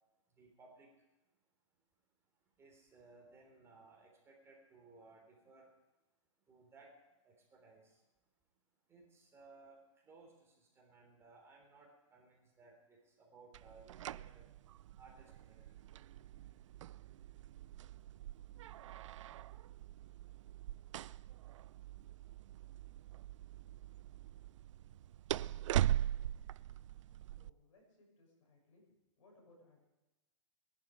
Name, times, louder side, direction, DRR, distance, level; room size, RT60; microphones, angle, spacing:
voice 1, 0.3-0.9 2.3-5.7 6.5-6.9 7.2-8.1 8.9-14.5 15.0-15.7, right 3 dB, 15° right, 0 dB, 3.3 m, -61 dB
sound 1, 13.5-27.5, right 12 dB, 70° right, 0.4 m, -41 dB
voice 2, 27.3-28.8 29.2-29.8, left 2 dB, 70° left, 1 dB, 6.7 m, -66 dB
20.0 x 11.0 x 5.0 m, 1.1 s
hypercardioid pair, 140°, 17 cm